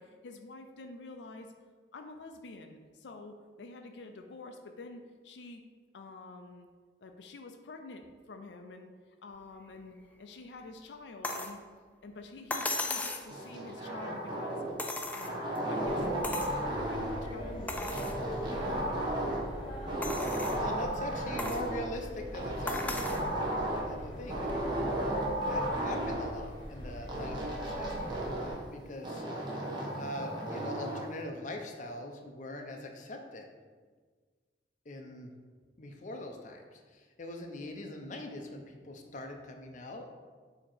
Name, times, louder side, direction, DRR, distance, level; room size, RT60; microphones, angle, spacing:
voice 1, 0.0-1.5 1.9-5.6 5.9-6.7 7.0-8.9 9.2-11.6 12.0-14.6 15.1-16.5 16.8-18.1, left 3 dB, 90° left, 5 dB, 0.5 m, -47 dB
sound 1, 11.2-11.6 12.5-13.3 14.8-15.6 16.2-16.6 17.1-17.2 17.7-18.2 18.8-18.9 20.0-20.6 21.4-21.7 22.7-23.3 24.5-24.6, left 2 dB, 10° left, 0.4 m, -36 dB
sound 2, 13.3-14.8 15.2-17.3 17.9-19.6 19.9-21.9 22.3-23.9 24.3-26.3 27.1-28.6 29.0-31.1, right 1 dB, 25° right, 1.0 m, -34 dB
sound 3, 15.8-28.5, equal, 30° left, 1.3 m, -42 dB
voice 2, 20.5-23.1 23.8-24.5 25.4-29.2 30.0-33.5 34.9-35.3 35.8-40.1, left 1 dB, 45° left, 3 dB, 0.6 m, -42 dB
7.4 x 2.9 x 4.3 m, 1.5 s
head